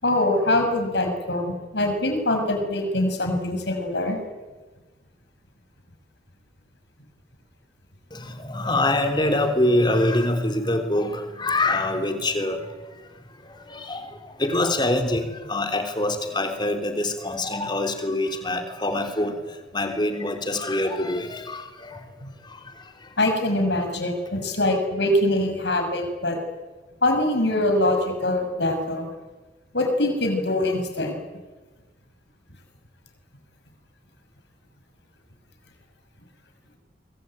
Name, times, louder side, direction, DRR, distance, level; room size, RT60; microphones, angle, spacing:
voice 1, 0.0-4.2 23.2-26.4 27.0-29.1 29.7-31.2, left 1 dB, 70° left, 5 dB, 6.7 m, -23 dB
voice 2, 8.1-12.6 13.7-14.1 14.4-19.4 19.7-21.9, left 1 dB, 25° left, 6 dB, 3.5 m, -24 dB
25.0 x 24.0 x 9.1 m, 1.3 s
head